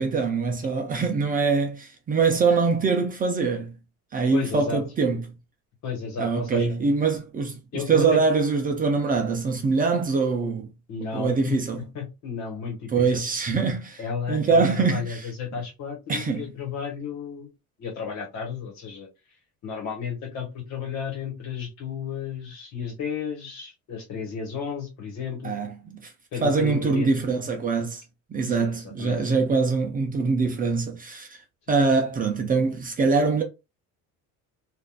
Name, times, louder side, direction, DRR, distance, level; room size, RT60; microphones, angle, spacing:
voice 1, 0.0-3.7 4.1-5.2 6.2-10.7 11.1-11.8 12.9-14.0 14.3-15.3 16.1-16.5 25.4-26.1 26.4-28.0 28.3-31.4 31.7-33.4, right 4 dB, 25° right, 0.5 m, -23 dB
voice 2, 4.3-4.8 5.8-6.7 7.7-8.2 10.9-11.6 11.9-13.0 14.0-17.5 17.8-19.1 19.6-25.5 26.3-27.1 28.5-29.2, left 6 dB, 55° left, 1.4 m, -33 dB
3.5 x 2.6 x 2.4 m
cardioid pair, 150°, 33 cm